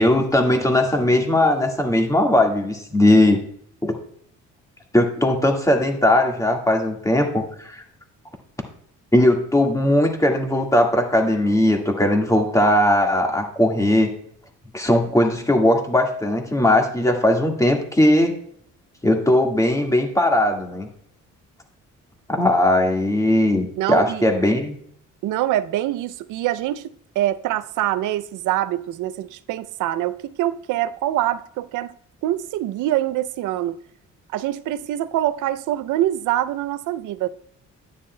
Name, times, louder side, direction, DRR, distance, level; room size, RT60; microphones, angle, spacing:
voice 1, 0.0-3.4 3.8-3.9 4.9-7.8 9.1-14.1 14.7-18.3 19.0-20.9 22.3-24.8, left 1 dB, 10° left, 1.7 m, -19 dB
voice 2, 23.8-24.3 25.2-31.9 32.2-33.8 34.3-37.3, right 13 dB, 85° right, 0.5 m, -24 dB
9.8 x 9.5 x 2.2 m
cardioid pair, 90°, 30 cm